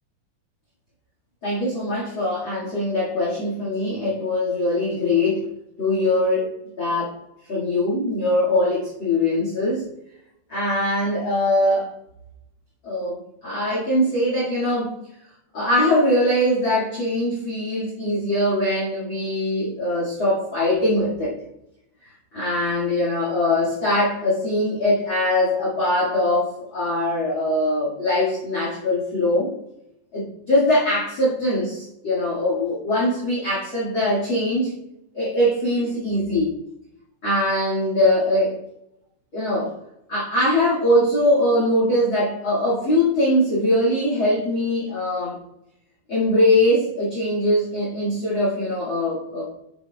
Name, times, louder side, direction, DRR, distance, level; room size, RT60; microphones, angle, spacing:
voice 1, 1.4-5.5 5.8-6.5 6.8-7.1 7.4-9.8 10.5-11.9 12.8-14.9 15.5-21.3 22.0-29.5 30.1-34.7 35.1-36.5 37.2-38.6 39.3-39.7 40.1-45.4 46.1-49.4, left 1 dB, 50° left, -6 dB, 1.4 m, -22 dB
10.0 x 7.0 x 2.3 m, 0.83 s
omnidirectional pair, 5.7 m